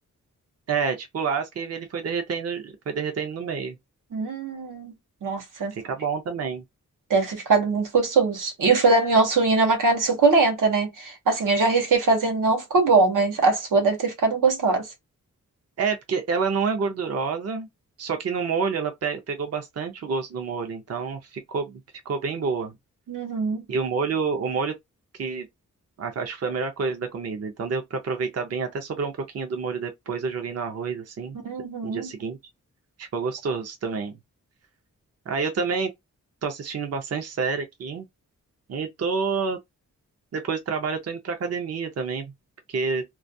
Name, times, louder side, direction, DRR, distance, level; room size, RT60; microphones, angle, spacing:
voice 1, 0.7-3.8 5.7-6.6 15.8-17.7 18.0-21.8 22.1-22.7 23.7-24.7 25.2-25.5 26.0-31.4 31.8-32.4 33.0-34.2 35.3-35.9 36.4-38.1 38.7-39.6 40.3-42.3 42.7-43.0, right 5 dB, 50° right, 0.5 m, -28 dB
voice 2, 4.1-4.9 5.2-5.7 7.1-14.9 23.1-23.6 31.4-32.1, right 3 dB, 85° right, 0.8 m, -21 dB
2.3 x 2.2 x 2.5 m
wide cardioid pair, 125°, 31 cm